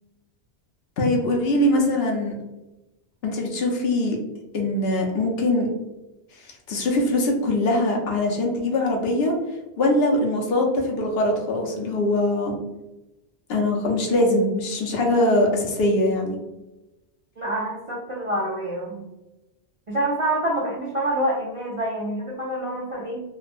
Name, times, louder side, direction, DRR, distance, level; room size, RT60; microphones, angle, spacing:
voice 1, 1.0-2.3 3.2-4.2 4.5-5.7 6.7-9.3 9.8-12.6 13.5-16.4, left 1 dB, 65° left, 0 dB, 0.8 m, -22 dB
voice 2, 17.4-19.0 19.9-23.2, right 1 dB, 45° right, -5 dB, 0.4 m, -27 dB
3.0 x 2.1 x 2.5 m, 0.99 s
omnidirectional pair, 1.1 m